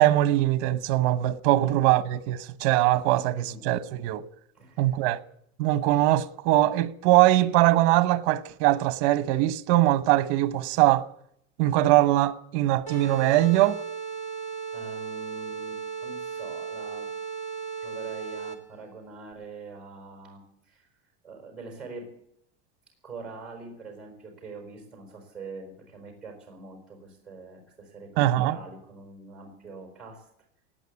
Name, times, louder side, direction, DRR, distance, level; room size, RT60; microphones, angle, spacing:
voice 1, 0.0-4.2 4.8-5.2 5.6-11.1 11.6-13.8 28.2-28.6, right 15 dB, 50° right, 1.1 m, -22 dB
voice 2, 3.1-3.6 4.5-5.0 14.7-17.1 17.8-20.9 21.2-22.1 23.0-30.3, right 3 dB, ahead, 5.1 m, -44 dB
sound 1, 12.9-18.8, right 6 dB, 20° left, 1.7 m, -36 dB
18.5 x 9.1 x 8.2 m
cardioid pair, 175°, 33 cm